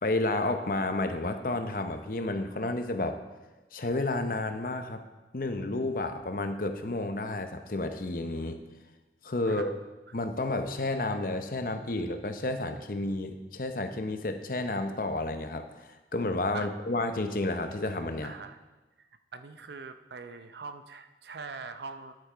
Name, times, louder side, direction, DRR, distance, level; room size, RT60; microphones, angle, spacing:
voice 1, 0.0-3.2 3.7-5.0 5.3-8.6 9.2-9.7 10.1-18.3, left 2 dB, 50° left, 7 dB, 0.8 m, -31 dB
voice 2, 9.4-9.8 16.5-16.7 18.2-18.6 19.0-22.1, right 4 dB, 70° right, 9 dB, 0.6 m, -43 dB
9.8 x 8.6 x 4.6 m, 1.2 s
head